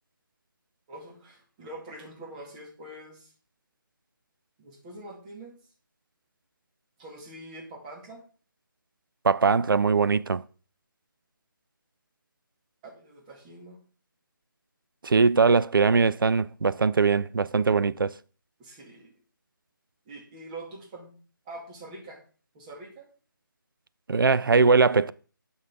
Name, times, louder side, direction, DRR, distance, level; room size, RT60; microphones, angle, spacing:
voice 1, 0.9-3.3 4.6-5.5 7.0-8.2 12.8-13.8 18.6-19.1 20.1-21.1 21.5-22.2 22.5-23.1, right 1 dB, 20° right, 2.3 m, -44 dB
voice 2, 9.2-10.4 15.0-18.1 24.1-25.1, right 4 dB, 80° right, 0.4 m, -21 dB
9.5 x 6.3 x 3.6 m
figure-of-eight pair, 155°, 11 cm